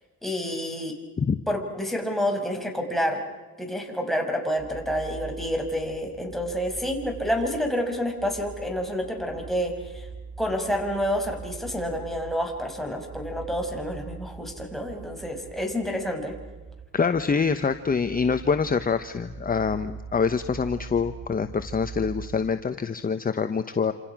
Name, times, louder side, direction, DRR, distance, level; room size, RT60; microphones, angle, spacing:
voice 1, 0.2-1.0 1.5-3.2 3.6-10.1 10.4-16.3, equal, ahead, 2 dB, 6.2 m, -28 dB
sound 1, 4.6-22.6, right 5 dB, 20° right, 3.2 m, -42 dB
voice 2, 16.9-23.9, left 5 dB, 30° left, 9 dB, 1.2 m, -25 dB
28.0 x 27.5 x 6.2 m, 1.2 s
cardioid pair, 90°, 30 cm